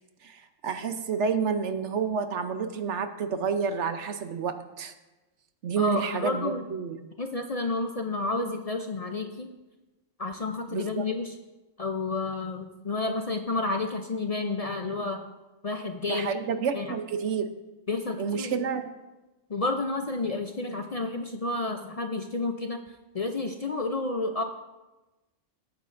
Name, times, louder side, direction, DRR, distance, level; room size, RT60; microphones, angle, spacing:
voice 1, 0.2-4.9 5.6-7.1 10.7-11.1 16.0-17.5 18.2-18.9, right 6 dB, 70° right, 9 dB, 1.0 m, -29 dB
voice 2, 5.8-6.6 7.2-9.5 10.2-11.3 11.8-15.3 15.6-16.3 16.7-16.9 17.9-18.6 19.5-22.8 23.1-24.4, left 3 dB, 45° left, 5 dB, 0.5 m, -30 dB
17.5 x 9.3 x 2.6 m, 1.1 s
omnidirectional pair, 1.3 m